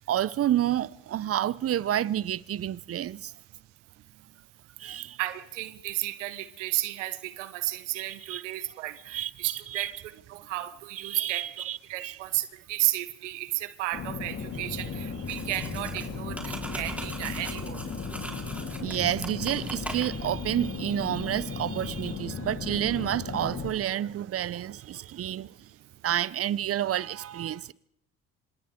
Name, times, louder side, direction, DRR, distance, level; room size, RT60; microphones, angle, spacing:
voice 1, 0.1-3.3 4.8-5.2 8.1-8.4 9.1-9.9 11.0-12.2 18.8-25.5 26.0-27.7, right 11 dB, 40° right, 0.7 m, -29 dB
voice 2, 5.2-9.9 10.3-11.4 11.9-17.8, right 16 dB, 85° right, 1.1 m, -33 dB
sound 1, 13.9-23.7, left 5 dB, 45° left, 3.6 m, -36 dB
sound 2, 15.2-20.4, right 1 dB, 5° right, 4.2 m, -41 dB
28.0 x 27.0 x 3.7 m
hypercardioid pair, 65°, 35 cm